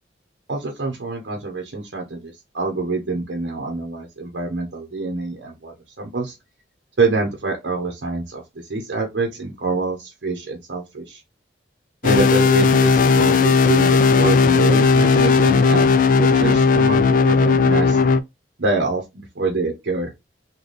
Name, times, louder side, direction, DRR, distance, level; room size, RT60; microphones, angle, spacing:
voice 1, 0.5-6.4 7.0-11.2 12.0-15.8 16.1-18.0 18.6-20.1, right 3 dB, 75° right, 0.7 m, -26 dB
sound 1, 12.0-18.2, left 4 dB, 50° left, 0.3 m, -16 dB
3.9 x 2.2 x 3.2 m
head